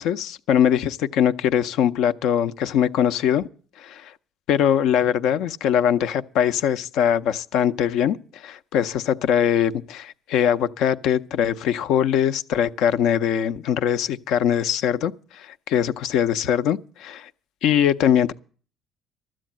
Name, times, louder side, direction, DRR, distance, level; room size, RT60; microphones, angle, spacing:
voice 1, 0.0-3.5 3.8-4.1 4.5-17.3 17.6-18.3, left 9 dB, 75° left, 0.6 m, -22 dB
13.0 x 7.6 x 9.0 m
supercardioid pair, 80°, 0 cm